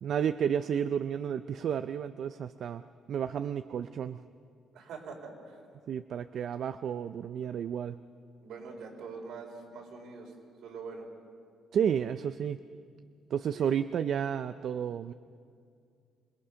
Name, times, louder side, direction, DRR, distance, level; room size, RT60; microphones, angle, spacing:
voice 1, 0.0-2.8 3.1-4.2 5.9-8.0 11.7-12.6 13.3-15.1, right 8 dB, 50° right, 11 dB, 0.4 m, -31 dB
voice 2, 4.7-5.6 8.4-10.3 10.6-11.1 13.5-13.8, right 4 dB, 70° right, 1 dB, 4.4 m, -44 dB
26.5 x 21.0 x 5.8 m, 2.3 s
cardioid pair, 165°, 0 cm